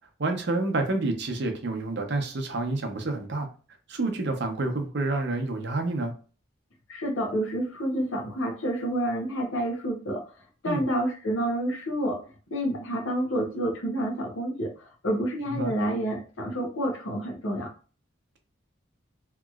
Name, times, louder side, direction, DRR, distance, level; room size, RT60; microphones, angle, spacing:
voice 1, 0.2-3.5 3.9-6.1 10.7-10.8 15.5-15.7, right 2 dB, 55° right, 4 dB, 0.6 m, -28 dB
voice 2, 6.9-10.2 10.6-12.2 12.5-17.7, right 1 dB, 85° left, 2 dB, 0.9 m, -29 dB
2.9 x 2.9 x 2.3 m, 0.37 s
head